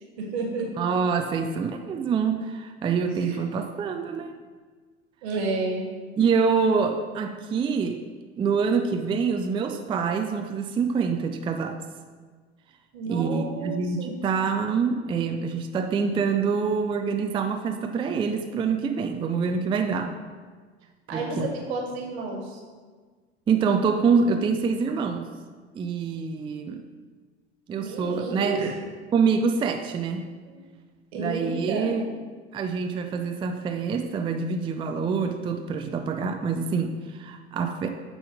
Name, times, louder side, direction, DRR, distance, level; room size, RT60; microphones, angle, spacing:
voice 1, 0.2-0.7 3.1-3.4 5.2-5.9 12.9-14.1 21.1-22.6 27.8-28.8 30.4-30.6 31.1-31.9, right 3 dB, 65° right, 1 dB, 1.7 m, -31 dB
voice 2, 0.8-4.3 6.2-8.0 8.4-11.8 13.1-20.2 21.1-21.2 23.5-25.3 25.7-26.8 27.7-28.7 29.1-30.3 31.1-32.1 32.5-37.9, right 5 dB, 15° right, 6 dB, 0.4 m, -26 dB
8.3 x 3.8 x 4.8 m, 1.5 s
figure-of-eight pair, 75°, 34 cm